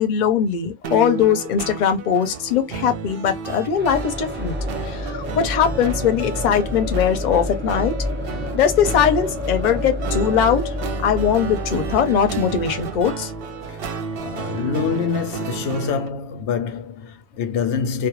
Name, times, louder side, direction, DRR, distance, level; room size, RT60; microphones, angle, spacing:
voice 1, 0.0-4.6 4.8-7.9 8.5-10.6 11.0-13.3, left 8 dB, 50° left, 0.6 m, -20 dB
sound 1, 0.8-16.1, right 6 dB, 65° right, 0.7 m, -32 dB
sound 2, 3.7-15.5, left 1 dB, 15° right, 0.4 m, -29 dB
voice 2, 13.7-18.1, left 6 dB, 90° left, 0.9 m, -26 dB
2.3 x 2.1 x 2.9 m
omnidirectional pair, 1.1 m